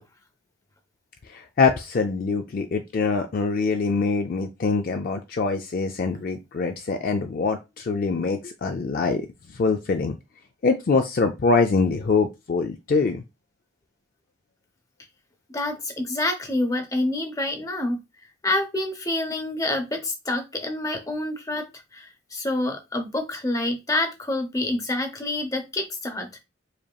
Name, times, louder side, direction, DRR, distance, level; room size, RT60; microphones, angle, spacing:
voice 1, 1.3-9.3 9.6-10.2 10.6-13.2, left 4 dB, 45° left, 5 dB, 0.3 m, -24 dB
voice 2, 15.5-18.0 18.4-21.7 21.9-26.4, left 2 dB, 15° left, 5 dB, 0.7 m, -27 dB
5.0 x 2.8 x 2.3 m, 0.24 s
head